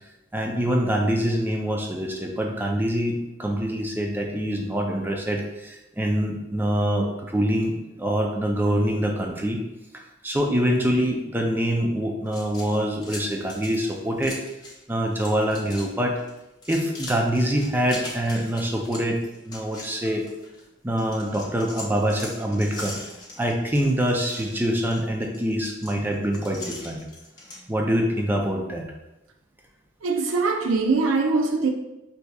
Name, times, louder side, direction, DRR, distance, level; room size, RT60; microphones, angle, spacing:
voice 1, 0.3-9.6 9.9-14.4 14.9-16.2 16.7-19.2 19.5-20.2 20.8-23.0 23.4-27.0 27.7-28.9, equal, 10° right, 1 dB, 0.4 m, -25 dB
sound 1, 12.3-14.8 15.1-15.9 16.2-20.6 21.0-27.6, left 2 dB, 20° left, 0.7 m, -41 dB
voice 2, 30.0-31.7, right 3 dB, 80° right, 4 dB, 0.5 m, -22 dB
4.6 x 2.6 x 2.3 m, 0.96 s
head